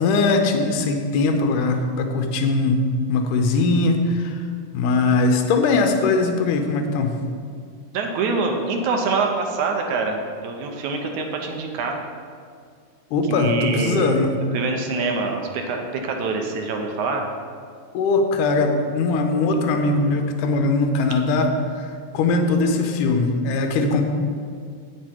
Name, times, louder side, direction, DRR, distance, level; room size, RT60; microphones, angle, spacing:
voice 1, 0.0-2.8 3.1-4.4 4.7-7.1 13.1-14.3 17.9-24.0, left 3 dB, 75° left, 4 dB, 2.2 m, -20 dB
voice 2, 7.9-12.0 13.3-14.1 14.5-17.3, right 4 dB, 75° right, 3 dB, 2.0 m, -25 dB
9.6 x 6.9 x 4.4 m, 2.2 s
omnidirectional pair, 3.9 m